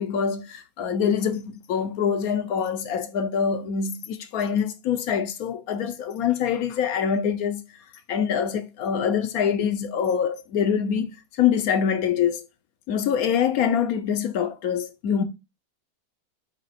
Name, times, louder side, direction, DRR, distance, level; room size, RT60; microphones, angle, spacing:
voice 1, 0.0-7.6 8.1-11.1 11.4-12.4 12.9-15.2, left 7 dB, 65° left, 1.0 m, -25 dB
8.0 x 2.9 x 4.3 m
omnidirectional pair, 2.0 m